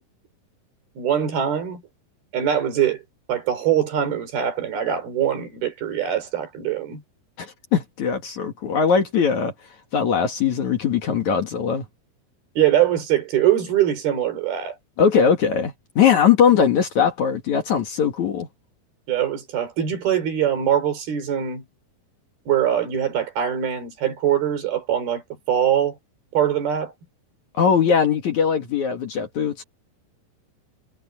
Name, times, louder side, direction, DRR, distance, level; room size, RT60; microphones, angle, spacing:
voice 1, 1.0-1.8 2.3-3.0 3.3-7.0 12.6-14.8 19.1-21.6 22.5-25.2 25.5-26.0 26.3-26.9, right 10 dB, 70° right, 5.8 m, -22 dB
voice 2, 7.4-9.5 9.9-11.8 15.0-18.5 27.5-29.6, left 7 dB, 55° left, 2.8 m, -20 dB
omnidirectional pair, 4.6 m